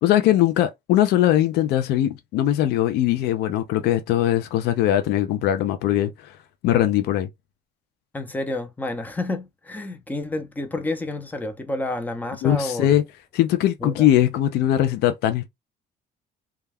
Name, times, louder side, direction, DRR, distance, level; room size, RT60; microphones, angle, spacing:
voice 1, 0.0-6.4 6.6-7.3 12.4-13.0 13.3-15.5, left 12 dB, 80° left, 0.4 m, -20 dB
voice 2, 8.1-13.0 13.8-14.1, left 2 dB, 10° left, 0.5 m, -29 dB
2.3 x 2.2 x 3.3 m
cardioid pair, 110°, 17 cm